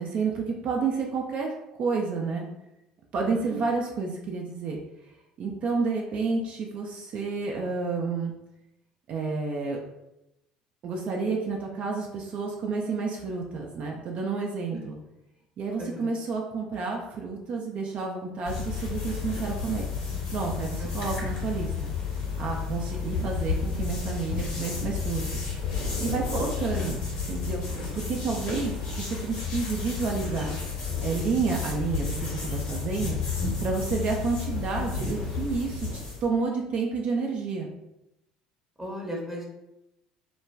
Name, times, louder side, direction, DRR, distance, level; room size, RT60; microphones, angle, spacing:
voice 1, 0.0-1.5 1.8-2.5 3.1-4.8 5.4-8.3 9.1-9.8 10.8-15.0 15.6-19.9 20.3-21.9 22.4-25.2 26.0-27.0 27.3-27.6 27.9-30.5 31.0-33.2 33.6-37.7, right 4 dB, 45° right, 0 dB, 0.4 m, -30 dB
sound 1, 18.5-36.3, left 5 dB, 70° left, 1.0 m, -31 dB
voice 2, 38.8-39.4, equal, 10° right, -2 dB, 0.7 m, -36 dB
2.3 x 2.2 x 3.2 m, 0.91 s
figure-of-eight pair, 60°, 3 cm